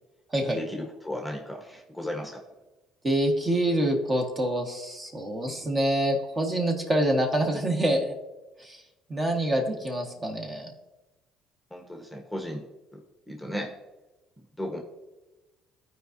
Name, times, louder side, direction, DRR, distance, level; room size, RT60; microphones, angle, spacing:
voice 1, 0.4-2.4 11.7-13.8 14.4-14.8, left 1 dB, ahead, 1 dB, 1.2 m, -36 dB
voice 2, 3.0-8.1 8.6-8.8 9.1-10.7, right 1 dB, 30° right, 2 dB, 1.4 m, -26 dB
13.5 x 4.7 x 2.7 m, 1.1 s
supercardioid pair, 90°, 0 cm